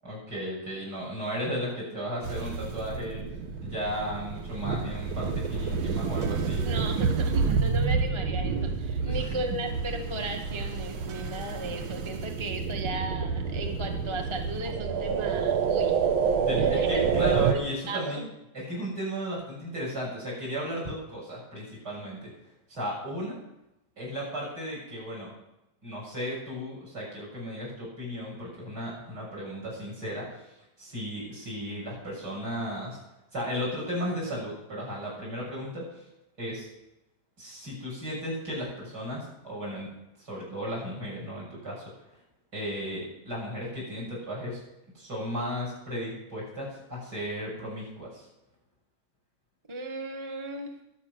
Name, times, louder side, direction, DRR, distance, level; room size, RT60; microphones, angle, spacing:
voice 1, 0.0-3.2 3.6-6.7 9.0-9.2 16.4-18.2 18.5-22.3 22.7-23.4 24.0-25.3 25.8-30.4 30.8-33.0 33.3-36.0 36.4-36.7 37.4-39.9 40.2-41.8 42.5-44.6 44.9-48.2, equal, 55° right, -2 dB, 7.8 m, -35 dB
sound 1, 2.2-17.5, right 5 dB, 80° right, 1.9 m, -28 dB
voice 2, 6.6-16.0 16.6-17.1 17.9-18.3 20.8-20.9 49.7-50.8, right 2 dB, 15° right, 3 dB, 1.1 m, -36 dB
22.5 x 7.7 x 6.2 m, 0.91 s
omnidirectional pair, 2.2 m